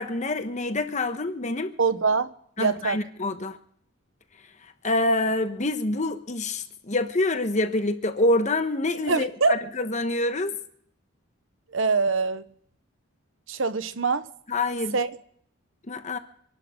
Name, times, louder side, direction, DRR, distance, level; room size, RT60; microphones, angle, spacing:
voice 1, 0.0-1.7 2.6-3.6 4.8-10.5 14.5-15.0 15.9-16.2, left 2 dB, 35° left, 1.2 m, -26 dB
voice 2, 1.8-2.3 2.6-3.0 9.1-9.6 11.7-12.4 13.5-14.3 14.9-15.1, right 4 dB, 65° right, 1.0 m, -23 dB
28.0 x 11.5 x 3.8 m
head